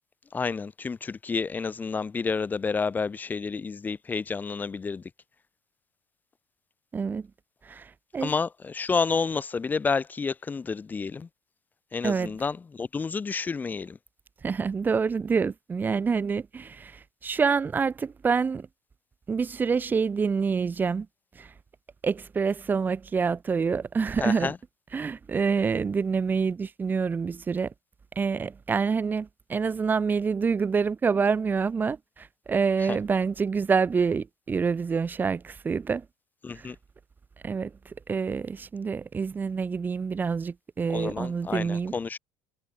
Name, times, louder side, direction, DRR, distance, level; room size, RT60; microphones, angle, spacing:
voice 1, 0.3-5.0 8.2-11.3 11.9-14.0 24.2-24.6 32.8-33.0 36.4-36.8 40.9-42.2, left 5 dB, 25° left, 1.2 m, -30 dB
voice 2, 6.9-7.3 7.6-8.3 12.0-12.3 14.4-18.7 19.3-21.1 21.4-21.5 22.0-24.5 24.9-27.7 28.2-36.0 36.5-36.7 37.4-41.9, right 5 dB, 25° right, 1.1 m, -27 dB
hypercardioid pair, 85°, 8 cm